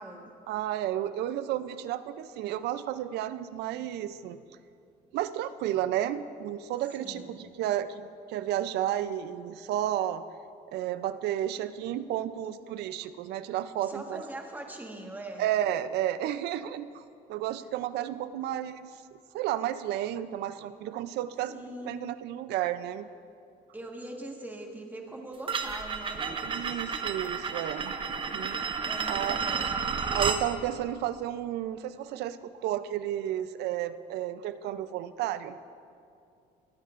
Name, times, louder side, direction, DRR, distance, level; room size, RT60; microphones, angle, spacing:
voice 1, 0.5-4.4 5.1-10.2 10.7-14.2 15.4-17.0 17.3-23.1 26.4-28.0 28.3-28.6 29.1-29.4 30.1-35.6, right 12 dB, 80° right, 13 dB, 0.5 m, -32 dB
voice 2, 7.0-7.4 13.8-15.5 17.6-17.7 21.5-22.1 23.7-26.3 28.9-29.8, right 1 dB, 10° right, 1 dB, 1.4 m, -42 dB
sound 1, 25.5-30.4, right 5 dB, 30° right, 0.7 m, -31 dB
19.5 x 10.0 x 2.5 m, 2.5 s
cardioid pair, 110°, 17 cm